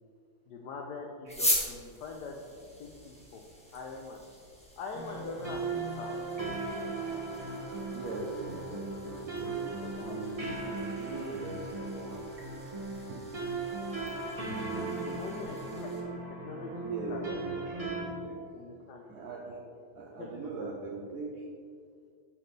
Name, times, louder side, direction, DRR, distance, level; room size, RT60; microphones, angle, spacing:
voice 1, 0.5-2.4 2.8-3.4 3.7-4.2 4.8-6.2 9.8-10.7 15.0-17.2 18.5-19.0 20.2-20.3 20.6-20.7, left 4 dB, 70° left, 1 dB, 1.0 m, -43 dB
sound 1, 1.3-16.0, left 1 dB, 5° left, 0.8 m, -41 dB
sound 2, 4.9-18.0, right 3 dB, 25° right, 0.9 m, -37 dB
voice 2, 7.6-12.3 12.9-13.4 14.5-15.2 16.8-18.4 19.1-21.4, right 3 dB, 65° right, -2 dB, 1.1 m, -41 dB
10.5 x 4.2 x 3.3 m, 2.3 s
omnidirectional pair, 2.3 m